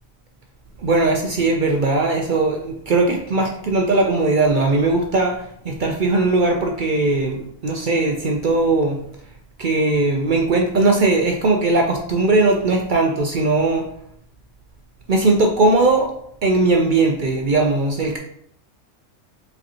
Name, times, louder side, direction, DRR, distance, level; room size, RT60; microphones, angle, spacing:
voice 1, 0.8-9.0 9.6-13.9 15.1-16.1 16.4-18.2, right 2 dB, 60° right, 2 dB, 0.5 m, -19 dB
5.0 x 3.2 x 2.8 m, 0.67 s
omnidirectional pair, 1.3 m